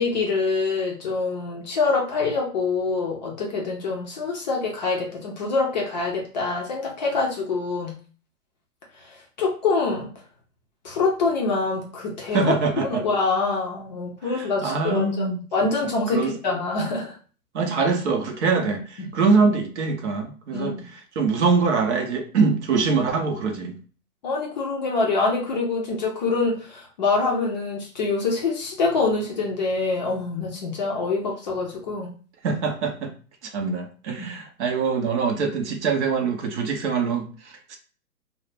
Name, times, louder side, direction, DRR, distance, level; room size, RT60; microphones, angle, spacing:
voice 1, 0.0-7.9 9.0-10.1 10.8-12.5 12.8-17.1 19.0-19.1 20.5-20.7 24.2-32.1 34.2-34.3, left 3 dB, 30° left, -2 dB, 0.5 m, -25 dB
voice 2, 12.3-13.0 14.2-15.7 16.1-16.3 17.5-23.8 32.4-33.1 33.4-37.8, right 4 dB, 50° right, 4 dB, 0.6 m, -24 dB
2.3 x 2.0 x 3.1 m, 0.39 s
hypercardioid pair, 130°, 47 cm